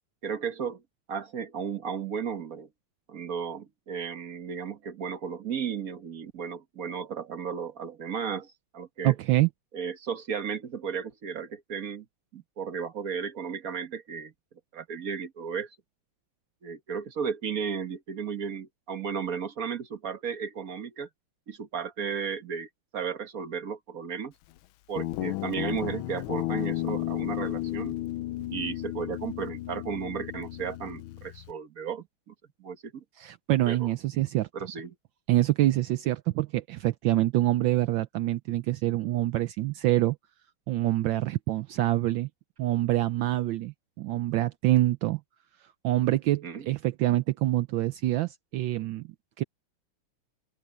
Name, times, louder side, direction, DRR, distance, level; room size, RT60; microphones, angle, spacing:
voice 1, 0.2-0.8 1.1-2.7 3.1-9.1 9.7-12.1 12.3-14.3 14.7-15.7 16.6-21.1 21.5-24.3 24.9-28.0 28.5-32.3 32.6-33.0 33.7-33.9 34.5-34.9 46.4-46.7, right 6 dB, 45° right, 1.7 m, -34 dB
voice 2, 9.0-9.5 33.2-34.5 35.3-40.2 40.7-42.3 42.6-45.2 45.8-49.1 49.4-49.5, right 15 dB, 75° right, 1.3 m, -26 dB
Guitar, 25.0-31.5, left 16 dB, 80° left, 1.4 m, -33 dB
omnidirectional pair, 2.3 m